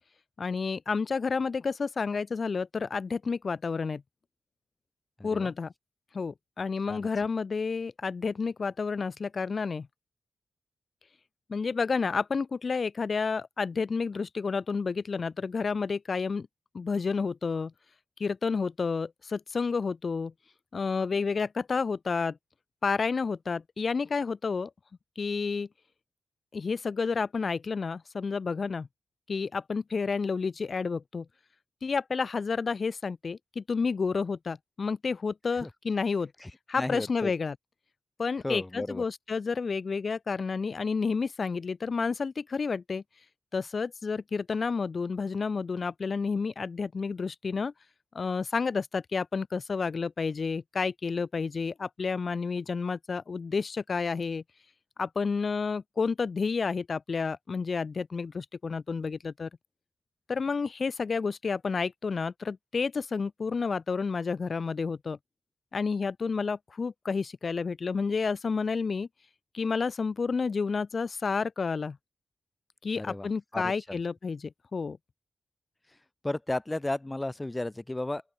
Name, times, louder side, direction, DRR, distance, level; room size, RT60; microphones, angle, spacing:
voice 1, 0.4-4.0 5.2-5.7 6.1-9.9 11.5-16.5 16.7-17.7 18.2-20.3 20.7-22.4 22.8-24.7 25.2-25.7 26.5-28.9 29.3-31.3 31.8-36.3 36.7-37.5 38.2-43.0 43.5-47.7 48.2-54.4 55.0-59.5 60.3-65.2 65.7-69.1 69.5-72.0 72.8-75.0, left 5 dB, 50° left, 3.6 m, -30 dB
voice 2, 5.2-5.5 6.9-7.1 35.6-35.7 36.4-37.3 38.4-39.0 73.0-74.0 76.2-78.2, left 2 dB, 15° left, 7.8 m, -34 dB
open air
cardioid pair, 90°, 0 cm